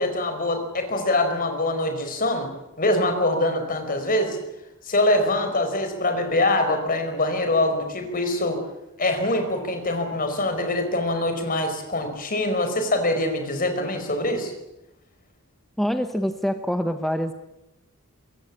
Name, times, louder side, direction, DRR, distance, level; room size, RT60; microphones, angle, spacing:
voice 1, 0.0-2.5 2.8-4.4 4.8-8.6 9.0-14.5, left 1 dB, 40° left, 7 dB, 4.8 m, -24 dB
voice 2, 15.8-17.3, equal, ahead, 7 dB, 1.0 m, -25 dB
23.5 x 21.5 x 8.7 m, 0.91 s
head